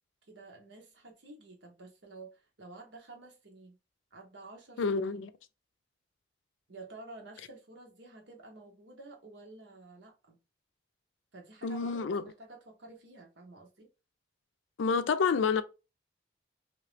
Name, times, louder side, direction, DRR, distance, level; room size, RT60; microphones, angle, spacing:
voice 1, 0.3-3.7 4.1-5.3 6.7-10.4 11.3-13.9, right 2 dB, 75° right, 1.1 m, -51 dB
voice 2, 4.8-5.3 11.6-12.2 14.8-15.6, left 5 dB, 90° left, 0.4 m, -28 dB
3.0 x 2.7 x 3.2 m
head